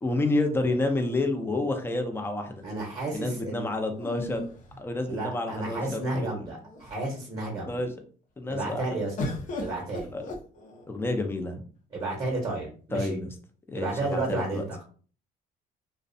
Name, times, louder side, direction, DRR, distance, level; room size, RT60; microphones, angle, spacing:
voice 1, 0.0-2.6 3.1-4.5 4.8-6.5 7.7-7.9 8.4-8.9 10.1-10.2 10.9-11.6 12.9-13.3 13.7-14.6, left 2 dB, 15° left, 5 dB, 0.5 m, -29 dB
sound 1, 0.8-2.0 3.9-5.5 6.2-6.3 6.6-7.2 9.2-11.0 12.0-12.7, left 2 dB, 50° left, 0.7 m, -39 dB
voice 2, 2.6-3.7 5.0-7.8 8.5-9.1 9.6-10.1 11.9-13.2 13.7-14.8, right 2 dB, 30° right, -2 dB, 0.8 m, -32 dB
2.5 x 2.1 x 2.6 m, 0.42 s
cardioid pair, 110°, 17 cm